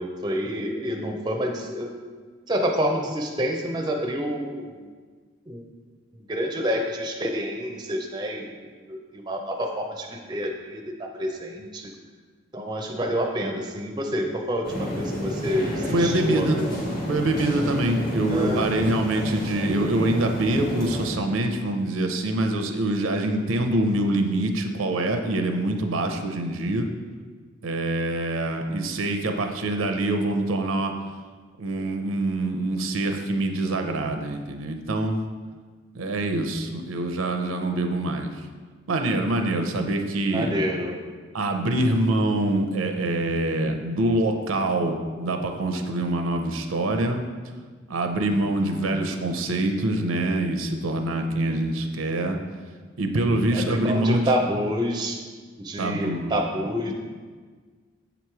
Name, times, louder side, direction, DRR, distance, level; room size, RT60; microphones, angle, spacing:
voice 1, 0.0-1.9 2.5-4.9 5.5-5.6 6.1-8.6 8.9-11.9 12.5-16.7 18.3-18.7 40.3-41.0 53.5-55.2 55.6-56.9, equal, 20° right, 2 dB, 0.4 m, -28 dB
sound 1, 14.6-21.1, equal, 45° left, 1.2 m, -30 dB
voice 2, 15.9-16.6 17.1-26.9 27.6-30.9 31.6-35.2 35.9-38.3 38.9-40.6 41.3-47.2 47.9-52.4 53.0-54.4 55.8-56.4, right 1 dB, 85° right, 5 dB, 0.6 m, -25 dB
7.0 x 3.0 x 4.7 m, 1.5 s
head